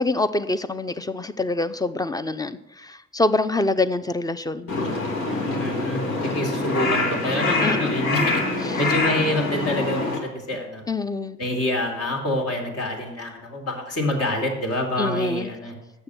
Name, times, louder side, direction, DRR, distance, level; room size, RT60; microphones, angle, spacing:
voice 1, 0.0-4.7 7.6-7.8 10.9-11.4 15.0-15.5, left 2 dB, 10° left, 13 dB, 0.5 m, -25 dB
Crow, 4.7-10.2, left 2 dB, 90° left, 2.1 m, -25 dB
voice 2, 5.6-10.8 11.4-15.7, left 1 dB, 55° left, 1 dB, 2.6 m, -27 dB
7.2 x 6.7 x 6.8 m, 0.90 s
cardioid pair, 90°, 30 cm